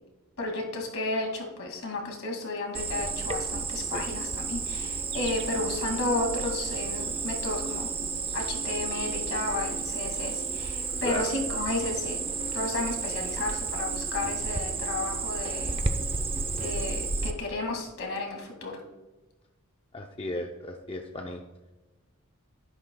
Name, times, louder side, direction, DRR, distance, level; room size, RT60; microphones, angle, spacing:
voice 1, 0.4-7.9 8.3-12.2 12.5-15.8 16.6-18.8, left 2 dB, 65° left, 1 dB, 2.3 m, -32 dB
Cricket, 2.7-17.3, right 4 dB, 25° right, 0.6 m, -32 dB
voice 2, 19.9-21.4, left 1 dB, 25° left, 2 dB, 0.6 m, -35 dB
12.0 x 10.5 x 2.3 m, 1.1 s
head